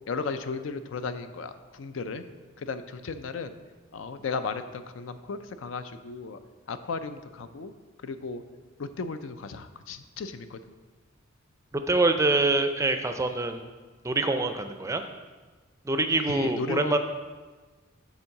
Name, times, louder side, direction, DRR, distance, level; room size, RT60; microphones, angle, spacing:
voice 1, 0.1-2.2 2.6-3.6 3.9-6.4 6.7-7.7 8.0-8.4 8.8-10.6 16.3-17.0, left 4 dB, 75° left, 10 dB, 0.4 m, -35 dB
voice 2, 11.9-13.6 14.0-15.0 15.9-17.0, right 2 dB, 15° right, 7 dB, 0.4 m, -25 dB
7.2 x 3.8 x 6.4 m, 1.3 s
head